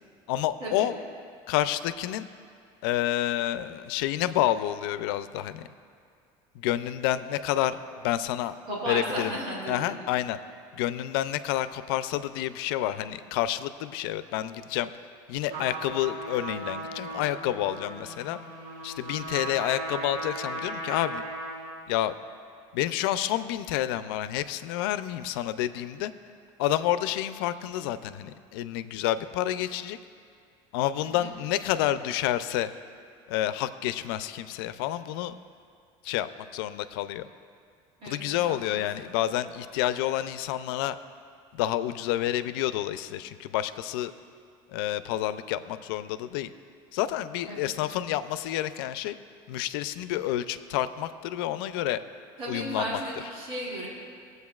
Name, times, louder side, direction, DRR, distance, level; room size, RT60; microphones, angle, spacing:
voice 1, 0.3-1.0 1.5-2.3 2.8-5.7 6.5-8.6 8.9-9.4 9.7-10.4 10.7-14.9 15.3-18.4 18.8-21.2 21.9-22.1 22.7-26.1 26.6-30.0 30.7-32.7 33.3-35.3 36.0-37.3 38.0-41.0 41.5-44.1 44.7-46.5 46.9-49.2 49.5-52.0 52.5-53.0, left 13 dB, 90° left, 13 dB, 0.4 m, -29 dB
voice 2, 8.6-10.0 31.0-31.3 38.0-38.9 47.4-47.7 52.4-53.9, right 1 dB, 50° right, -5 dB, 2.7 m, -34 dB
Trumpet, 15.5-21.8, right 1 dB, 80° right, 2.6 m, -37 dB
19.0 x 7.9 x 2.4 m, 2.3 s
cardioid pair, 140°, 12 cm